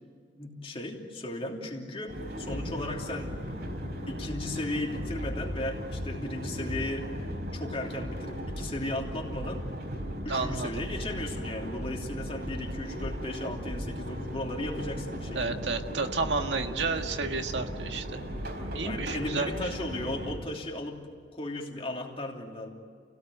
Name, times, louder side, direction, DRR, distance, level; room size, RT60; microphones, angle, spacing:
voice 1, 0.4-3.3 4.1-7.1 7.5-9.6 10.2-15.7 18.8-21.0 21.3-22.7, left 1 dB, 35° left, 1 dB, 3.1 m, -36 dB
sound 1, 2.1-20.4, equal, 65° right, 4.3 m, -37 dB
voice 2, 10.3-10.8 15.3-18.2 18.7-19.6, right 4 dB, 85° right, 5 dB, 1.7 m, -31 dB
29.0 x 17.5 x 9.3 m, 2.1 s
head